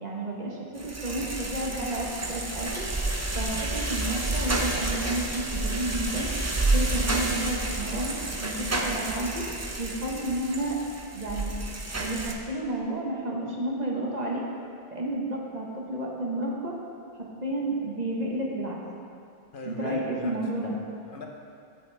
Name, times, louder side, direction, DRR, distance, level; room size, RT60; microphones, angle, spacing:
voice 1, 0.0-2.8 3.3-6.3 6.7-9.5 9.8-10.8 11.1-11.5 12.0-14.4 14.9-16.7 17.2-18.8 19.7-20.7, right 1 dB, 45° right, -2 dB, 1.1 m, -31 dB
sound 1, 0.8-12.3, right 2 dB, 20° right, 0.4 m, -30 dB
voice 2, 19.5-21.3, left 2 dB, 60° left, 1 dB, 0.9 m, -41 dB
8.6 x 7.9 x 3.3 m, 2.4 s
omnidirectional pair, 1.0 m